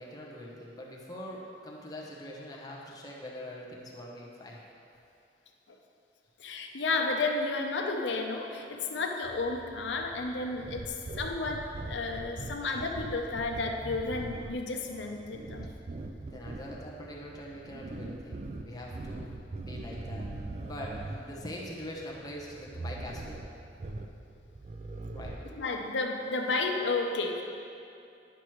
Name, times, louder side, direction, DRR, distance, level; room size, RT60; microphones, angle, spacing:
voice 1, 0.0-4.6 16.3-20.2 20.7-23.5 25.1-25.4, equal, 20° left, -3 dB, 0.9 m, -43 dB
voice 2, 6.4-15.7 25.5-27.4, left 3 dB, 90° left, 3 dB, 0.7 m, -32 dB
sound 1, 9.2-25.5, right 2 dB, 40° right, 0.4 m, -42 dB
10.0 x 6.0 x 3.1 m, 2.6 s
head